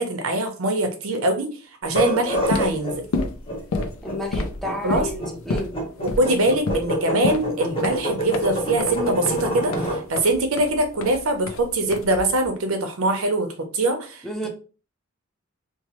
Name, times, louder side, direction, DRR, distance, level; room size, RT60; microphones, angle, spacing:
voice 1, 0.0-1.5 1.8-3.1 4.8-5.1 6.0-14.5, right 2 dB, 80° right, 5 dB, 0.7 m, -23 dB
sound 1, 1.8-10.0, equal, 25° left, 0.9 m, -27 dB
sound 2, 2.3-12.5, left 3 dB, 75° left, 0.4 m, -30 dB
voice 2, 4.0-5.7 14.2-14.5, left 1 dB, ahead, 1 dB, 0.5 m, -31 dB
3.0 x 2.1 x 2.9 m, 0.35 s
head